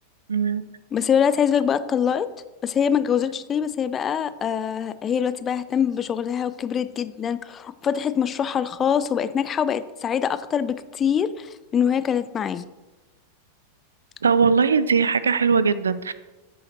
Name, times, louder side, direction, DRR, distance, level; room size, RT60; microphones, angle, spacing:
voice 1, 0.3-0.6 14.2-16.1, right 5 dB, 70° right, 15 dB, 0.4 m, -20 dB
voice 2, 0.9-2.3 2.6-12.6, left 8 dB, 25° left, 14 dB, 0.4 m, -24 dB
14.0 x 6.3 x 2.9 m, 1.1 s
figure-of-eight pair, 90°, 0 cm